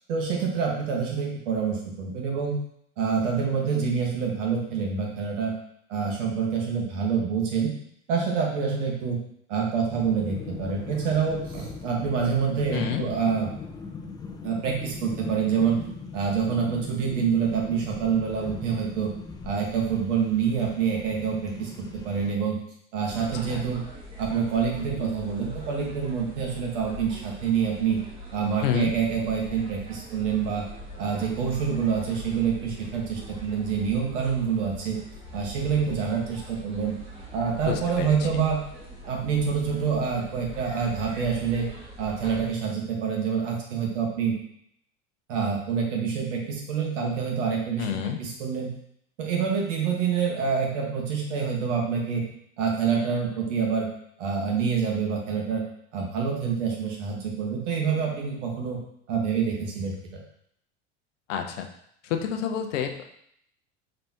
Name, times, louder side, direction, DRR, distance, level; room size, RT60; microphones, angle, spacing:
voice 1, 0.1-2.6 3.0-5.5 5.9-7.7 8.1-9.2 9.5-13.5 14.4-15.8 16.1-19.1 19.4-22.6 22.9-23.9 24.2-28.0 28.3-30.7 31.0-35.0 35.3-36.9 37.3-38.6 39.1-41.7 42.0-44.4 45.3-47.9 48.2-48.7 49.2-52.2 52.6-53.9 54.2-55.6 55.9-58.8 59.1-60.2, right 6 dB, 80° right, -1 dB, 1.3 m, -26 dB
sound 1, 9.9-22.3, left 4 dB, 10° left, 0.4 m, -40 dB
voice 2, 12.7-13.0 23.1-23.6 28.6-28.9 37.7-38.4 47.8-48.2 61.3-61.7 62.0-63.0, left 8 dB, 80° left, 5 dB, 0.6 m, -29 dB
sound 2, 23.0-42.5, equal, 15° right, 1.2 m, -42 dB
4.2 x 3.3 x 2.8 m, 0.70 s
hypercardioid pair, 85°, 36 cm